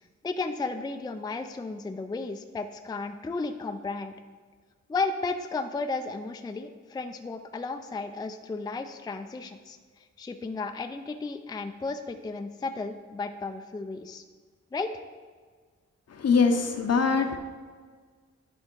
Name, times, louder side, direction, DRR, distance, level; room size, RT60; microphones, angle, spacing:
voice 1, 0.2-4.1 4.9-9.8 10.2-14.2 14.7-14.9, left 3 dB, 15° left, 7 dB, 0.4 m, -33 dB
voice 2, 16.1-17.4, left 5 dB, 60° left, 6 dB, 0.8 m, -23 dB
10.5 x 3.6 x 4.5 m, 1.5 s
wide cardioid pair, 90°, 29 cm